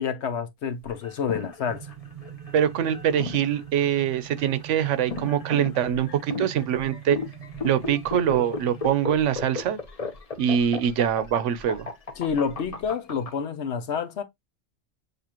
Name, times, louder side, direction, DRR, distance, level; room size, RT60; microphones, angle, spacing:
voice 1, 0.0-1.9 12.2-14.2, left 6 dB, 65° left, 1.0 m, -28 dB
sound 1, 0.8-13.3, left 4 dB, 35° left, 0.9 m, -35 dB
sound 2, 1.6-9.8, right 10 dB, 50° right, 0.7 m, -42 dB
voice 2, 2.5-7.2 7.6-9.8 10.4-11.9, right 9 dB, 80° right, 1.0 m, -24 dB
6.8 x 2.5 x 2.9 m
omnidirectional pair, 1.3 m